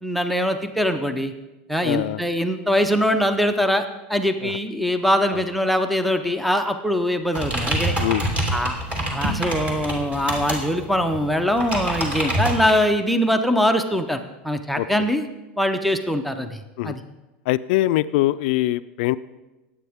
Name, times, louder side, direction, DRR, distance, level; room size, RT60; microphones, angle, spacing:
voice 1, 0.0-1.3 1.7-3.8 4.1-8.0 8.5-8.8 9.1-15.3 15.6-17.0, equal, ahead, 8 dB, 0.7 m, -22 dB
voice 2, 1.8-2.2 4.4-4.5 5.3-5.4 8.0-8.2 14.8-15.1 16.8-17.0 17.5-19.2, left 16 dB, 65° left, 15 dB, 0.4 m, -23 dB
sound 1, 7.3-12.7, right 1 dB, 20° right, 2.7 m, -26 dB
19.5 x 8.7 x 3.6 m, 1.1 s
supercardioid pair, 135°, 6 cm